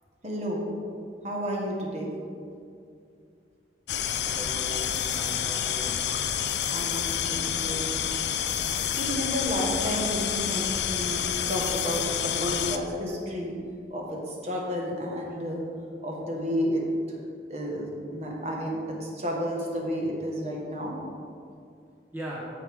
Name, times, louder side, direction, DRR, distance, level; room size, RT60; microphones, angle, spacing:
voice 1, 0.2-0.7 1.2-2.1 6.7-7.9 8.9-11.2 11.5-13.6 13.9-15.6 16.0-17.2 17.5-21.0, equal, 35° right, -2 dB, 1.4 m, -31 dB
sound 1, 3.9-12.8, left 9 dB, 70° left, 0.5 m, -28 dB
voice 2, 4.2-6.0 22.1-22.4, equal, 10° right, -5 dB, 0.9 m, -39 dB
14.5 x 4.8 x 3.5 m, 2.4 s
head